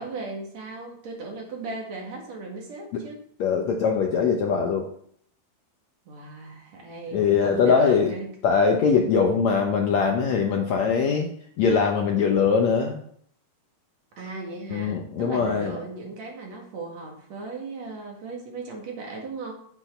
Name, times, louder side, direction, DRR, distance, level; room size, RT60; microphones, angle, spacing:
voice 1, 0.0-3.2 6.1-8.3 14.2-19.5, right 3 dB, 50° right, 0 dB, 2.8 m, -37 dB
voice 2, 3.4-4.9 7.1-8.1 8.4-11.3 11.6-13.0 14.7-15.8, left 6 dB, 80° left, 2 dB, 1.5 m, -22 dB
8.7 x 8.0 x 4.4 m, 0.63 s
omnidirectional pair, 4.5 m